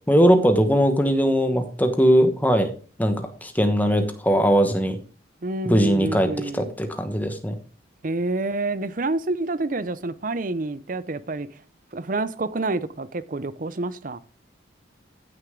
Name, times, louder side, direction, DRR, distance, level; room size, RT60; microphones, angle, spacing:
voice 1, 0.1-2.7 3.0-5.0 5.6-6.3 6.5-7.6, equal, 10° left, 1.1 m, -20 dB
voice 2, 5.4-6.7 8.0-11.5 11.9-14.2, right 2 dB, 45° right, 0.6 m, -28 dB
14.5 x 6.6 x 3.7 m
head